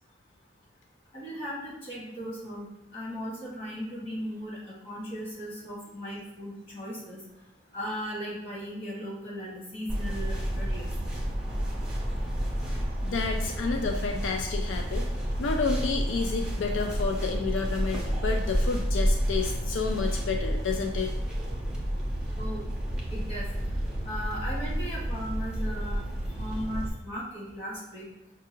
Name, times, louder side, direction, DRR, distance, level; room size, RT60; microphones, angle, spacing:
voice 1, 1.1-2.7 2.9-7.2 7.7-10.9 13.5-13.6 22.4-22.6 23.1-23.5 24.0-26.0 26.4-28.0, equal, 30° left, -7 dB, 1.5 m, -37 dB
sound 1, 9.9-26.9, equal, 5° right, 0.6 m, -30 dB
voice 2, 12.7-15.1 15.4-21.1, left 4 dB, 85° left, 3 dB, 0.4 m, -30 dB
5.8 x 2.4 x 2.9 m, 0.87 s
head